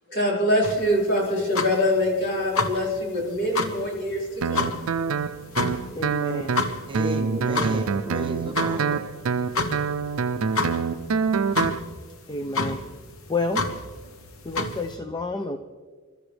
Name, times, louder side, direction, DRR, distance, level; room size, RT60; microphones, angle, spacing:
voice 1, 0.1-4.8, left 1 dB, 55° left, -4 dB, 5.2 m, -24 dB
sound 1, 0.6-15.0, left 3 dB, 70° left, 1.1 m, -31 dB
Guitar, 4.4-11.8, right 5 dB, 75° right, 0.5 m, -26 dB
voice 2, 5.9-6.6 12.3-12.8 13.3-13.6 14.4-15.6, left 3 dB, 20° left, 7 dB, 0.5 m, -29 dB
voice 3, 6.9-9.0, right 1 dB, 25° right, 1 dB, 1.6 m, -32 dB
27.5 x 13.0 x 3.4 m, 1.5 s
head